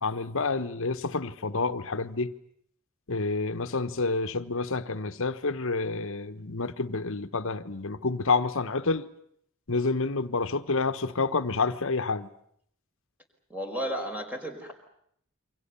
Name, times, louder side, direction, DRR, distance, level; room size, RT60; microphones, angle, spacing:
voice 1, 0.0-2.3 3.1-9.1 9.7-12.3, left 3 dB, 60° left, 1.3 m, -28 dB
voice 2, 13.5-14.7, equal, 5° right, 5.1 m, -33 dB
29.0 x 24.5 x 7.1 m
head